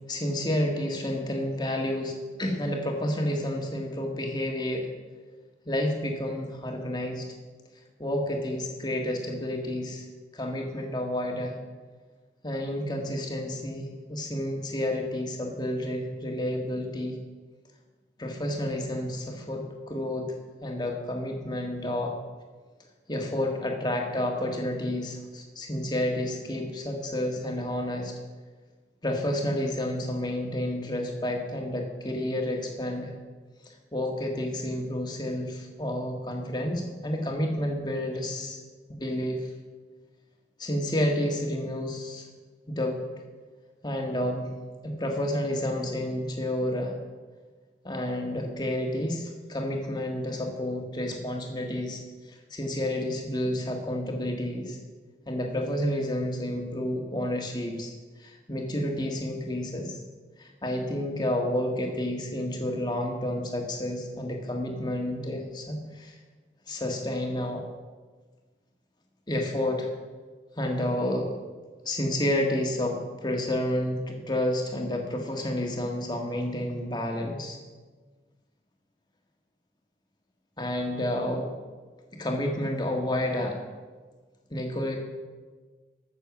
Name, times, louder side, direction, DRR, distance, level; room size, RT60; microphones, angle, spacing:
voice 1, 0.1-4.9 5.6-7.2 8.0-10.0 10.3-11.5 12.4-17.2 18.2-20.3 20.6-22.1 23.1-28.1 29.0-33.1 33.9-38.6 38.9-39.5 40.6-42.2 42.7-43.0 43.8-44.5 44.8-46.9 47.8-52.0 52.3-54.8 55.3-57.9 58.2-60.0 60.4-66.1 66.7-67.6 69.3-69.9 70.6-71.3 71.8-77.6 80.6-81.5 82.1-83.6 84.5-85.0, left 1 dB, 25° left, 2 dB, 1.6 m, -30 dB
14.5 x 6.8 x 6.1 m, 1.4 s
head